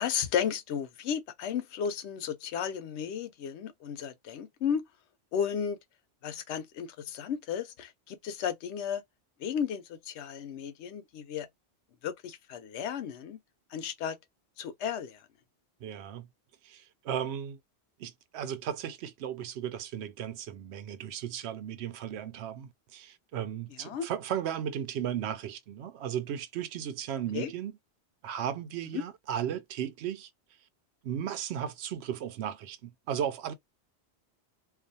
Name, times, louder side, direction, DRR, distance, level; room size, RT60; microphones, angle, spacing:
voice 1, 0.0-4.8 5.3-5.8 6.2-9.0 9.4-11.5 12.0-13.4 13.7-14.2 14.6-15.2 23.8-24.1 27.3-27.5 28.9-29.0, left 8 dB, 85° left, 0.9 m, -34 dB
voice 2, 15.8-16.3 16.6-17.6 18.0-27.8 28.2-30.3 31.0-33.5, right 9 dB, 75° right, 0.8 m, -35 dB
2.4 x 2.3 x 2.6 m
omnidirectional pair, 1.1 m